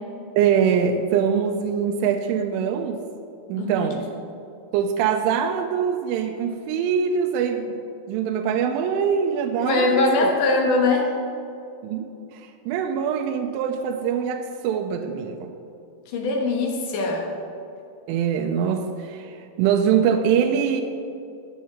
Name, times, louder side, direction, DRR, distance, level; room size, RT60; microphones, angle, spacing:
voice 1, 0.4-3.0 3.5-4.1 4.7-10.3 11.8-15.5 18.1-20.8, right 7 dB, 90° right, 4 dB, 3.1 m, -23 dB
voice 2, 3.6-3.9 9.6-11.1 16.1-17.3, left 2 dB, 70° left, 0 dB, 2.0 m, -21 dB
20.0 x 7.3 x 3.6 m, 2.6 s
omnidirectional pair, 5.5 m